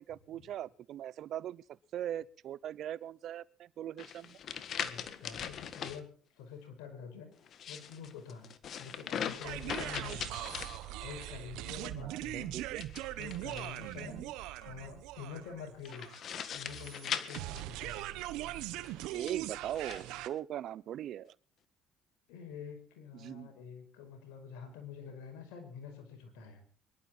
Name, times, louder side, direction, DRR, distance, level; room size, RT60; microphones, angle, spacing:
voice 1, 0.0-1.6 1.9-4.4 12.0-12.9 14.1-14.3 19.1-21.3 23.1-23.5, right 11 dB, 65° right, 0.7 m, -40 dB
sound 1, 4.0-6.0 7.4-11.3 12.7-14.0 15.8-18.3 19.0-20.0, left 8 dB, 55° left, 1.6 m, -41 dB
voice 2, 4.7-6.1 6.4-7.3 7.7-8.5 8.8-10.4 11.0-12.5 13.2-14.3 14.6-16.1 16.5-18.1 22.3-26.6, left 6 dB, 85° left, 5.1 m, -47 dB
sound 2, 9.4-20.3, right 15 dB, 80° right, 1.1 m, -41 dB
23.5 x 12.0 x 4.4 m
supercardioid pair, 80°, 0 cm